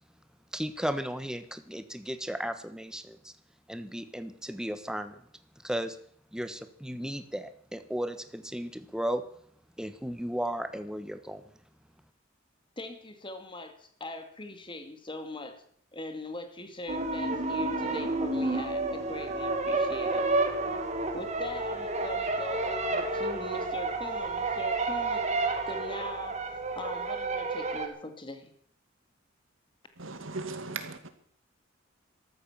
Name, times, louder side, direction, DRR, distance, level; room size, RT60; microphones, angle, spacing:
voice 1, 0.5-3.3 3.7-5.2 5.6-6.0 6.3-9.2 9.8-11.4, equal, 5° right, 10 dB, 1.2 m, -35 dB
voice 2, 12.8-15.6 15.9-20.2 21.1-25.3 25.7-26.4 26.8-28.5, left 2 dB, 25° left, 7 dB, 2.2 m, -41 dB
sound 1, 16.9-27.9, right 2 dB, 35° right, 2.3 m, -30 dB
voice 3, 30.0-31.1, right 3 dB, 90° right, 8 dB, 2.3 m, -37 dB
14.0 x 13.5 x 7.3 m, 0.63 s
head